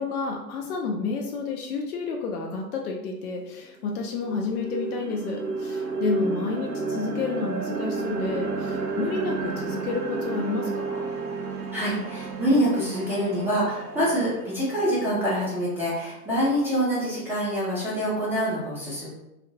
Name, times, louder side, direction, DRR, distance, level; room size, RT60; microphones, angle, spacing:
voice 1, 0.0-11.1, left 4 dB, 65° left, 1 dB, 0.5 m, -30 dB
sound 1, 3.3-3.4 3.8-15.9, right 4 dB, 90° right, 0.6 m, -32 dB
voice 2, 11.7-19.1, equal, 5° right, -10 dB, 0.5 m, -25 dB
2.5 x 2.0 x 2.6 m, 0.93 s
figure-of-eight pair, 100°, 47 cm